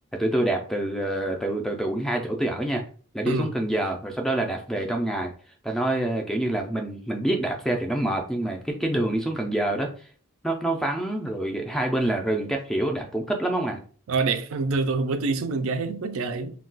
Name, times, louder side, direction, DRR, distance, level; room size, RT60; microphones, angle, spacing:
voice 1, 0.2-2.8 3.1-5.3 5.6-9.9 10.4-13.8, right 1 dB, ahead, 0.3 m, -26 dB
voice 2, 14.1-16.5, right 4 dB, 70° right, 0.4 m, -26 dB
2.3 x 2.2 x 3.8 m
head